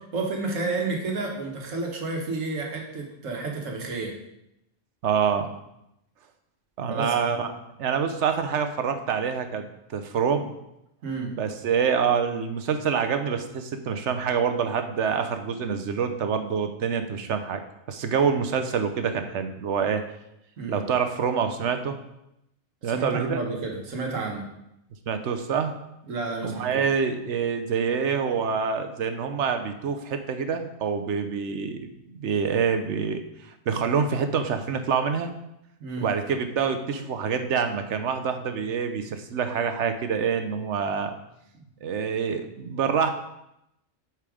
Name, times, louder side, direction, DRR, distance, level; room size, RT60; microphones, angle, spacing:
voice 1, 0.1-4.1 6.9-7.1 11.0-11.3 20.6-20.8 22.8-24.4 26.1-26.9 35.8-36.1, right 3 dB, 85° right, 1 dB, 1.7 m, -31 dB
voice 2, 5.0-5.5 6.8-7.5 7.8-10.5 11.4-17.6 17.9-20.0 20.7-22.0 22.8-23.4 25.1-25.7 26.4-35.3 36.0-41.1 41.8-43.1, right 6 dB, 65° right, 8 dB, 1.0 m, -26 dB
8.6 x 4.5 x 4.9 m, 0.84 s
omnidirectional pair, 1.3 m